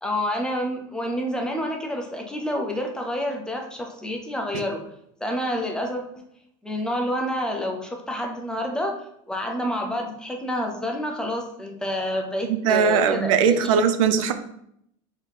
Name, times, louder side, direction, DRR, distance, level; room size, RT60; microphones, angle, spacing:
voice 1, 0.0-4.8 5.2-6.2 6.6-9.0 9.3-13.8, equal, 5° left, 1 dB, 0.4 m, -28 dB
voice 2, 12.4-14.3, right 6 dB, 85° right, 9 dB, 0.5 m, -20 dB
4.0 x 2.9 x 4.1 m, 0.73 s
supercardioid pair, 160°, 17 cm